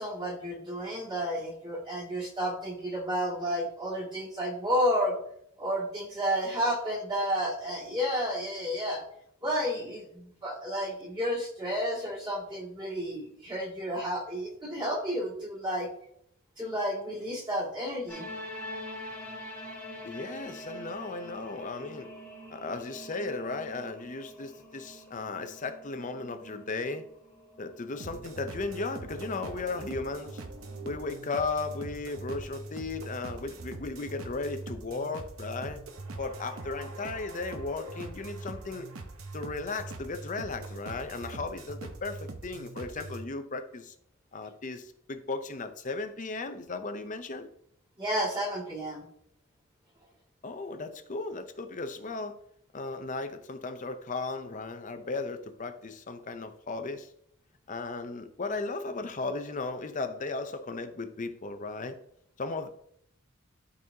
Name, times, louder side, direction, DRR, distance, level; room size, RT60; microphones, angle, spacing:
voice 1, 0.0-5.1 5.6-9.0 9.4-15.9 16.6-18.3 48.0-49.0, equal, 25° right, -4 dB, 2.3 m, -31 dB
sound 1, 18.1-30.8, equal, 5° left, 1.6 m, -45 dB
voice 2, 20.0-22.1 22.5-27.1 27.6-30.4 30.8-35.8 36.2-38.9 39.3-43.9 44.3-47.5 50.4-52.4 52.7-57.1 57.7-61.9 62.4-62.7, left 3 dB, 35° left, 8 dB, 0.6 m, -36 dB
sound 2, 28.0-43.2, right 2 dB, 75° right, 0.8 m, -42 dB
12.0 x 4.1 x 2.8 m, 0.69 s
head